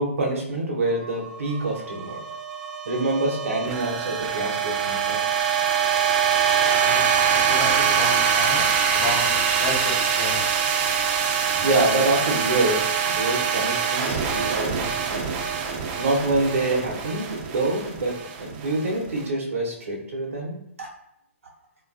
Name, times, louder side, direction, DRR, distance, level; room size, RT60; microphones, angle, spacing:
voice 1, 0.0-2.3 2.9-5.2 11.6-15.3 16.0-20.9, right 2 dB, 75° right, 0 dB, 0.7 m, -26 dB
sound 1, 0.9-19.2, right 7 dB, 40° right, 0.4 m, -24 dB
voice 2, 6.7-7.0 7.3-10.4, left 2 dB, 60° left, -2 dB, 0.9 m, -32 dB
2.5 x 2.3 x 2.3 m, 0.75 s
hypercardioid pair, 130°, 7 cm